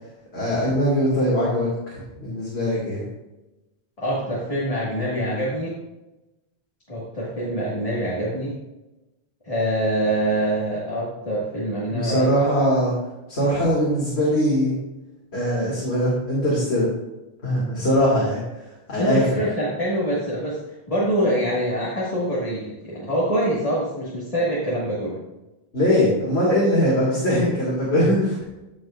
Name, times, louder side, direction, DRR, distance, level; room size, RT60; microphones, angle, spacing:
voice 1, 0.3-3.0 11.9-12.9 13.3-14.7 15.3-16.9 17.4-18.4 18.9-19.4 25.7-28.4, equal, 90° left, -6 dB, 2.5 m, -21 dB
voice 2, 4.0-5.8 6.9-8.6 9.4-12.3 19.0-25.2, right 1 dB, 35° left, -7 dB, 1.9 m, -25 dB
15.0 x 5.3 x 2.5 m, 1.0 s
omnidirectional pair, 1.1 m